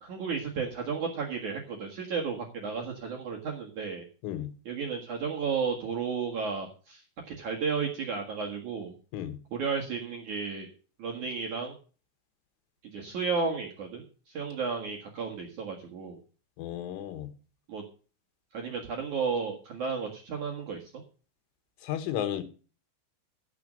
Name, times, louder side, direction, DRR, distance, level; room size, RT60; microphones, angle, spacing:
voice 1, 0.0-4.0 4.7-7.0 7.3-8.9 9.5-10.7 11.0-11.7 12.9-16.2 17.7-17.8 18.5-20.8, right 5 dB, 55° right, 0 dB, 2.2 m, -33 dB
voice 2, 16.6-17.3 21.8-22.4, left 11 dB, 80° left, 10 dB, 3.9 m, -33 dB
15.0 x 6.3 x 6.4 m, 0.37 s
omnidirectional pair, 5.8 m